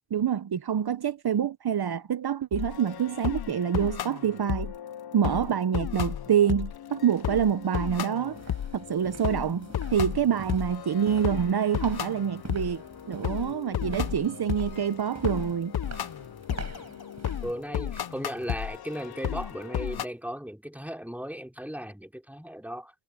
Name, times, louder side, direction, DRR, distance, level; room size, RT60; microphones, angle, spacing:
voice 1, 0.1-4.7 5.1-8.4 8.7-12.8 13.1-15.7, right 8 dB, 70° right, 0.8 m, -26 dB
sound 1, 2.5-20.0, left 10 dB, 65° left, 0.6 m, -34 dB
sound 2, 6.9-7.0 7.6-18.8 19.2-19.5 19.9-20.0, right 3 dB, 40° right, 5.2 m, -47 dB
voice 2, 17.4-22.9, equal, 5° right, 4.0 m, -36 dB
cardioid pair, 45°, 40 cm